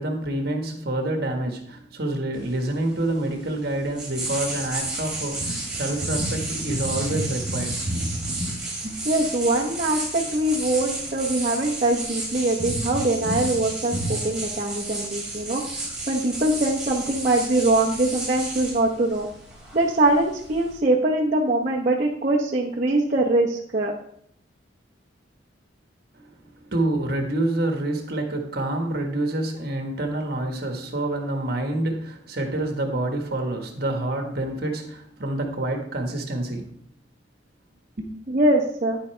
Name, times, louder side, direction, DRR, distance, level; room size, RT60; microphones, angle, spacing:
voice 1, 0.0-7.8 8.8-9.0 26.1-26.3 26.6-36.7 38.0-38.1, right 1 dB, 55° right, 3 dB, 1.5 m, -27 dB
sound 1, 2.3-20.8, right 2 dB, 5° right, 2.4 m, -31 dB
voice 2, 9.1-15.6 16.1-19.3 19.7-23.9 38.3-39.0, right 2 dB, 40° right, -4 dB, 0.9 m, -22 dB
9.7 x 8.3 x 3.3 m, 0.65 s
head